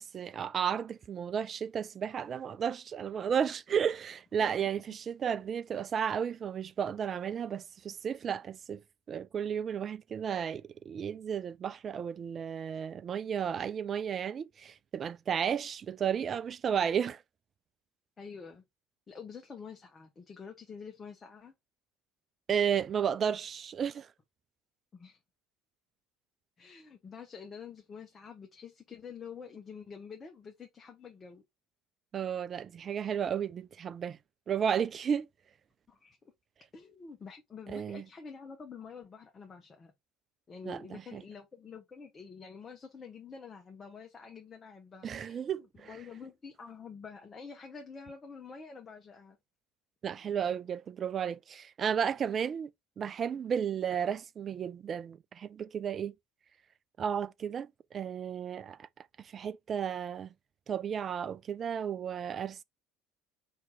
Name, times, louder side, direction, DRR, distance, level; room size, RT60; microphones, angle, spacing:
voice 1, 0.0-17.2 22.5-24.1 32.1-34.2 34.5-35.3 37.7-38.0 40.7-41.2 45.0-45.9 50.0-52.7 53.0-56.1 57.0-58.9 59.2-60.3 60.7-62.6, right 8 dB, 35° right, 0.3 m, -33 dB
voice 2, 18.2-18.6 19.1-21.5 24.9-25.2 26.6-31.4 35.9-36.3 36.7-39.9 40.5-49.4, left 6 dB, 25° left, 0.8 m, -47 dB
4.6 x 2.9 x 3.6 m
figure-of-eight pair, 60°, 0 cm